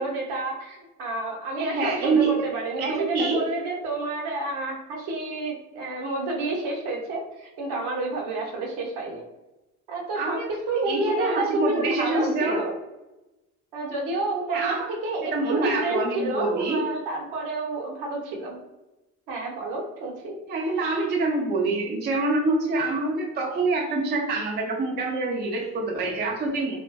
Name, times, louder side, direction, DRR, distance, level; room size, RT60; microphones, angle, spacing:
voice 1, 0.0-9.2 9.9-12.7 13.7-18.6 19.3-20.3, right 2 dB, 60° right, 0 dB, 0.9 m, -29 dB
voice 2, 1.6-2.5 2.8-3.5 10.1-10.5 10.9-12.7 14.5-14.9 15.3-16.9 20.5-26.7, right 3 dB, 25° right, -1 dB, 0.5 m, -26 dB
2.5 x 2.2 x 2.2 m, 1.0 s
hypercardioid pair, 55°, 44 cm